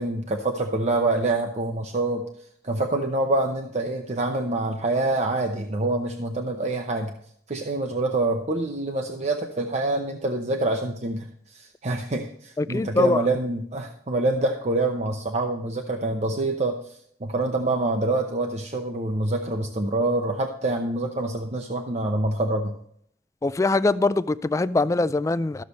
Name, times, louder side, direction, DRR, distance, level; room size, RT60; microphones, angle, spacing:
voice 1, 0.0-2.2 2.6-7.1 7.5-22.8, right 2 dB, 40° right, 0.7 m, -26 dB
voice 2, 12.6-13.2 23.4-25.6, left 2 dB, 20° left, 0.3 m, -22 dB
13.5 x 6.6 x 4.2 m
head